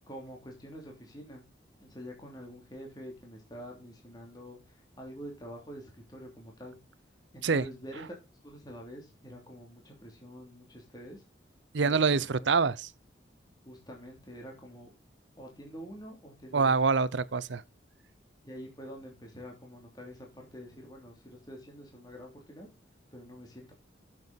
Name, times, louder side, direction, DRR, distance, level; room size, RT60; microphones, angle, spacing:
voice 1, 0.1-1.4 1.8-6.8 7.3-8.1 8.4-11.2 11.8-12.5 13.6-14.9 15.4-16.7 18.4-22.7 23.1-23.7, equal, 20° left, 3.0 m, -46 dB
voice 2, 11.7-12.9 16.5-17.6, right 4 dB, 70° right, 0.6 m, -25 dB
9.4 x 7.5 x 4.1 m
head